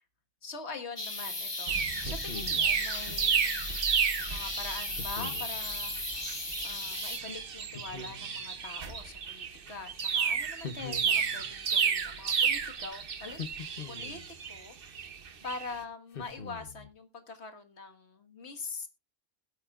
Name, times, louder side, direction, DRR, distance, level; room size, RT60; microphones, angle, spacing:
voice 1, 0.4-3.6 4.3-6.0 6.6-13.4 13.9-14.2 14.5-15.1 15.4-18.9, left 4 dB, 85° left, 6 dB, 1.8 m, -43 dB
sound 1, 1.0-7.2, left 2 dB, 25° left, 1.3 m, -37 dB
sound 2, 1.7-15.7, right 6 dB, 60° right, 1.1 m, -32 dB
sound 3, 1.9-2.8 5.0-5.6 7.7-8.5 10.6-11.5 13.3-14.3 16.1-16.9, left 5 dB, 60° left, 1.2 m, -43 dB
20.5 x 8.6 x 2.4 m, 0.26 s
omnidirectional pair, 1.1 m